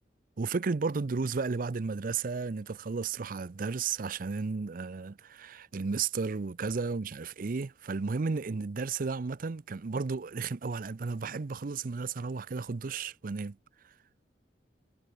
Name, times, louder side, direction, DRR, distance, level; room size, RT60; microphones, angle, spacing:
voice 1, 0.4-13.6, right 4 dB, 50° right, 0.5 m, -33 dB
head